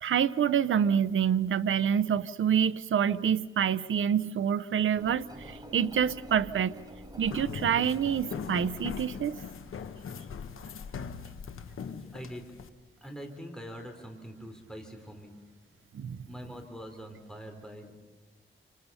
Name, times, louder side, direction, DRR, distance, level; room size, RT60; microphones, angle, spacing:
voice 1, 0.0-6.8 7.2-9.4 15.9-16.2, right 8 dB, 75° right, 0.7 m, -27 dB
Engine, 5.0-10.4, equal, 20° right, 4.6 m, -48 dB
sound 1, 7.2-12.7, left 6 dB, 85° left, 1.2 m, -40 dB
voice 2, 11.8-12.5 13.0-15.4 16.3-17.9, equal, 5° left, 3.7 m, -44 dB
28.5 x 26.5 x 5.6 m
wide cardioid pair, 105°, 21 cm